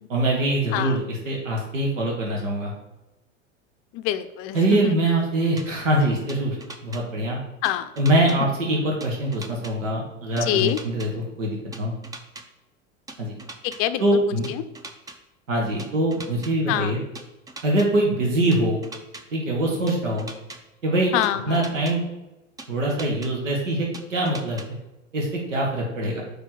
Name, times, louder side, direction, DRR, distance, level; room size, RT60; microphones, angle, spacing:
voice 1, 0.1-2.7 4.5-6.6 6.8-7.4 8.0-11.9 13.2-13.3 14.0-14.5 15.5-17.0 17.6-18.8 19.3-20.3 20.8-21.1 21.5-22.0 22.7-24.6 25.1-26.2, right 1 dB, 80° right, -1 dB, 1.6 m, -23 dB
voice 2, 3.9-5.0 7.6-7.9 10.5-10.8 13.6-14.0 16.7-16.9 21.1-21.6, left 13 dB, 40° left, 12 dB, 0.5 m, -25 dB
sound 1, 5.6-5.7 6.3-7.0 7.6-8.4 9.0-9.7 10.4-11.1 11.7-12.4 13.1-13.8 14.4-15.2 15.8-16.5 17.2-17.9 18.5-19.2 19.9-20.6 21.2-21.9 22.6-23.3 23.9-24.7, right 2 dB, 10° right, 0.5 m, -40 dB
5.2 x 4.4 x 6.0 m, 0.98 s
hypercardioid pair, 90°, 37 cm